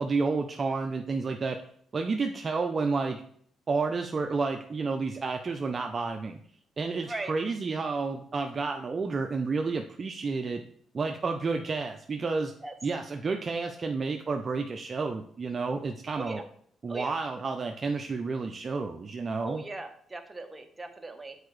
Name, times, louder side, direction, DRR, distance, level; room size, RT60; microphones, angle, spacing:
voice 1, 0.0-1.7 1.9-3.2 3.7-6.4 6.8-10.6 10.9-12.5 12.8-16.4 16.8-19.6, right 4 dB, 40° right, 4 dB, 0.5 m, -30 dB
voice 2, 19.4-21.4, right 2 dB, 20° right, 5 dB, 0.8 m, -39 dB
6.6 x 4.6 x 3.2 m, 0.62 s
cardioid pair, 90°, 0 cm